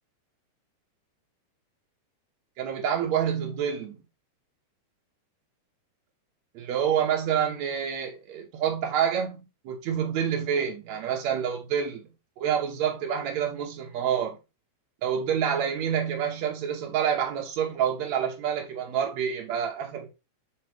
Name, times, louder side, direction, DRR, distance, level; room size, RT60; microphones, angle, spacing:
voice 1, 2.6-4.0 6.5-12.1 12.4-14.4 15.0-20.2, right 8 dB, 80° right, 1.5 m, -28 dB
8.3 x 3.7 x 3.5 m
omnidirectional pair, 5.0 m